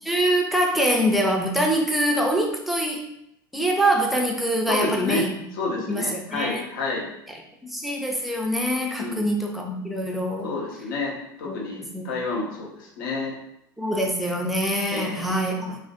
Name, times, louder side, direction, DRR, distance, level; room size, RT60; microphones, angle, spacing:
voice 1, 0.1-3.0 3.5-5.3 5.9-6.6 7.6-10.5 11.5-12.0 13.8-15.8, right 1 dB, ahead, 0 dB, 0.5 m, -24 dB
voice 2, 4.7-5.2 5.5-7.1 9.0-9.3 10.4-13.3 14.9-15.2, left 3 dB, 65° left, -2 dB, 0.8 m, -29 dB
3.1 x 2.1 x 2.5 m, 0.79 s
hypercardioid pair, 85°, 12 cm